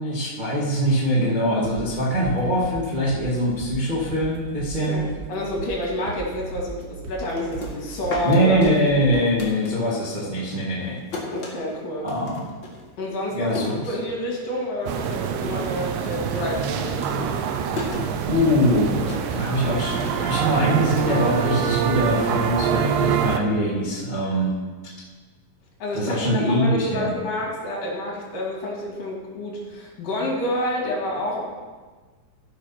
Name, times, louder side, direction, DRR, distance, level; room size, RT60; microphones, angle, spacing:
voice 1, 0.0-5.0 8.2-11.0 12.0-12.5 13.3-13.9 18.2-24.5 25.9-27.1, equal, 25° right, -6 dB, 1.0 m, -23 dB
sound 1, 1.6-9.5, right 3 dB, 65° right, 1.7 m, -37 dB
voice 2, 4.9-8.6 11.3-12.1 13.0-17.4 25.8-31.4, left 1 dB, 70° left, -4 dB, 4.1 m, -29 dB
sound 2, 7.1-10.1 10.4-14.5 14.8-15.4 15.7-22.0, left 2 dB, 40° left, 2.0 m, -37 dB
sound 3, 14.9-23.4, right 7 dB, 85° right, 2.4 m, -25 dB
13.5 x 6.0 x 5.8 m, 1.4 s
omnidirectional pair, 4.0 m